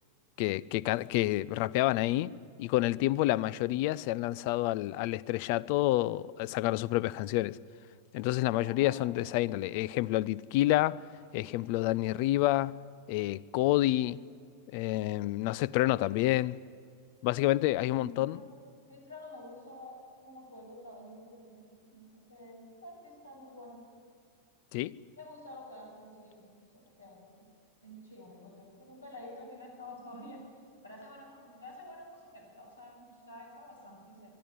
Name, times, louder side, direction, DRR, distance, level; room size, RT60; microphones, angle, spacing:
voice 1, 0.4-2.3 2.6-7.6 8.1-11.0 11.3-12.7 13.1-14.2 14.7-16.6 17.2-18.4 24.7-24.9, left 16 dB, 45° left, 0.4 m, -28 dB
voice 2, 8.6-9.1 18.0-18.5 18.9-23.8 25.2-27.5 27.8-30.5 30.8-34.3, left 1 dB, 80° left, 6.4 m, -49 dB
22.5 x 12.5 x 9.9 m
figure-of-eight pair, 90°, 0 cm